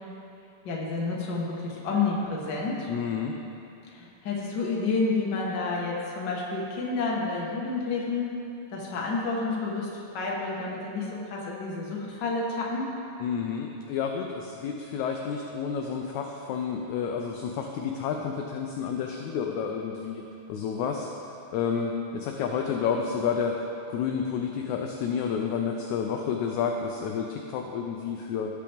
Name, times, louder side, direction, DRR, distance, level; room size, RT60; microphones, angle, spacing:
voice 1, 0.6-2.9 3.9-8.3 8.7-12.9, left 3 dB, 50° left, -3 dB, 1.4 m, -30 dB
voice 2, 2.9-3.4 13.2-20.2 20.5-23.6 23.9-28.5, left 6 dB, 80° left, 2 dB, 1.7 m, -30 dB
17.0 x 5.9 x 3.5 m, 2.7 s
omnidirectional pair, 3.8 m